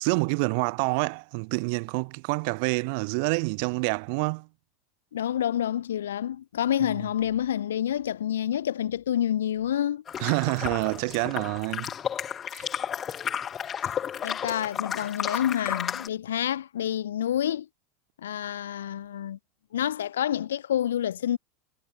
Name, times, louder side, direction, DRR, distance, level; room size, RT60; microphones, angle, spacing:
voice 1, 0.0-4.5 10.2-11.9 12.5-12.7, right 34 dB, 55° right, 6.8 m, -27 dB
voice 2, 5.1-10.0 14.2-17.7 18.2-19.4 19.7-21.4, left 10 dB, 75° left, 1.6 m, -28 dB
sound 1, 10.1-16.1, left 8 dB, 30° left, 4.2 m, -32 dB
figure-of-eight pair, 80°, 0 cm